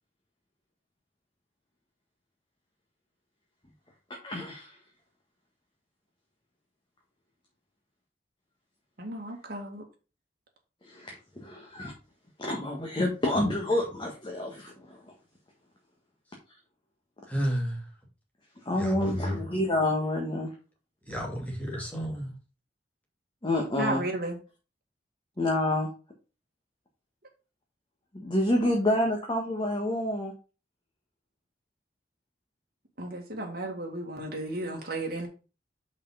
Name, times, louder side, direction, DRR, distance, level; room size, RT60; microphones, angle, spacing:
voice 1, 4.2-4.8 10.8-11.9 12.4-15.1 18.6-20.5 21.7-21.8 23.4-24.0 25.4-25.9 28.1-30.3, left 1 dB, 25° left, 1.5 m, -28 dB
voice 2, 9.0-9.8 23.8-24.3 33.0-35.3, right 2 dB, 55° right, 2.0 m, -34 dB
voice 3, 17.3-17.8 18.8-19.4 21.1-22.3, equal, 10° left, 2.7 m, -31 dB
5.6 x 4.8 x 5.6 m
head